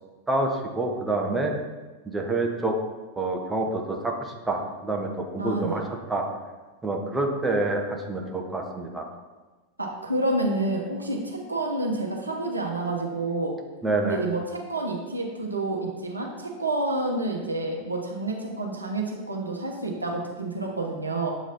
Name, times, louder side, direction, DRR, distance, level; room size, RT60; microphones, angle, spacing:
voice 1, 0.3-1.5 2.1-2.7 3.2-5.8 6.1-6.2 6.8-9.1 13.8-14.2, right 2 dB, 10° right, 1 dB, 0.7 m, -27 dB
voice 2, 5.4-5.8 9.8-13.5 14.0-21.3, right 2 dB, 80° right, 0 dB, 0.8 m, -29 dB
7.7 x 3.1 x 4.1 m, 1.2 s
figure-of-eight pair, 90°, 0 cm